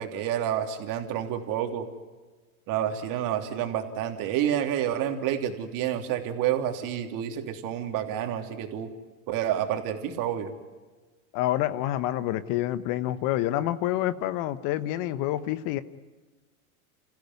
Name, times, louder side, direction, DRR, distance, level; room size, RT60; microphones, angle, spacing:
voice 1, 0.0-1.9 2.7-8.9 9.3-10.5, right 10 dB, 45° right, 5 dB, 3.2 m, -29 dB
voice 2, 11.3-15.8, left 14 dB, 50° left, 14 dB, 1.2 m, -27 dB
28.5 x 15.5 x 9.6 m, 1.3 s
hypercardioid pair, 120°, 44 cm